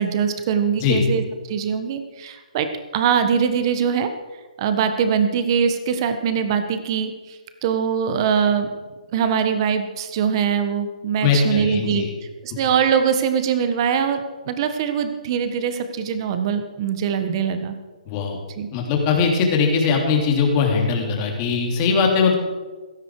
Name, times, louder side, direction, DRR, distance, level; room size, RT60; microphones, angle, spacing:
voice 1, 0.0-2.7 2.9-4.1 4.6-8.7 9.1-12.0 12.4-17.7 18.6-18.7, right 7 dB, 35° right, 9 dB, 1.5 m, -22 dB
voice 2, 11.2-12.1 12.5-12.6 18.0-18.4 18.7-22.3, left 5 dB, 30° left, 1 dB, 3.2 m, -20 dB
16.5 x 13.0 x 4.9 m, 1.3 s
hypercardioid pair, 150°, 4 cm